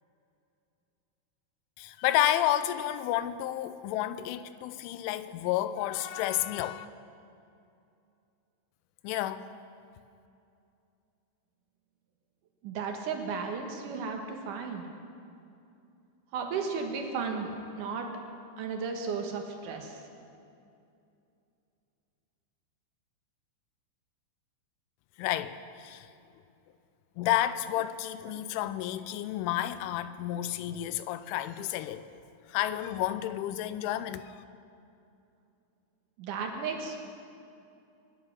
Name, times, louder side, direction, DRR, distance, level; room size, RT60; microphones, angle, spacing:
voice 1, 1.8-6.9 9.0-9.5 25.2-26.1 27.2-32.1 32.5-34.3, left 13 dB, 85° left, 3.1 m, -31 dB
voice 2, 12.6-14.9 16.3-17.5 17.7-18.1 18.6-20.0 36.2-37.1, right 5 dB, 70° right, 2.0 m, -34 dB
24.5 x 10.0 x 5.9 m
omnidirectional pair, 5.5 m